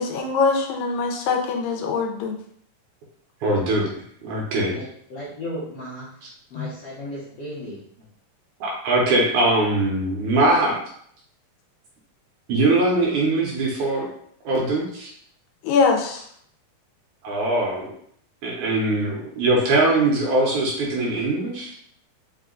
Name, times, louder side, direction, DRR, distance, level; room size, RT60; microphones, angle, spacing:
voice 1, 0.0-2.4 6.6-6.7 15.6-16.2, left 4 dB, 85° left, 2 dB, 2.3 m, -22 dB
voice 2, 3.4-3.9 4.2-4.8 8.6-10.8 12.5-14.1 14.4-15.1 17.2-17.9 18.4-21.7, right 2 dB, 70° right, -2 dB, 2.1 m, -21 dB
voice 3, 4.7-7.8, equal, 65° left, -9 dB, 1.5 m, -35 dB
5.5 x 2.2 x 3.7 m, 0.64 s
omnidirectional pair, 4.0 m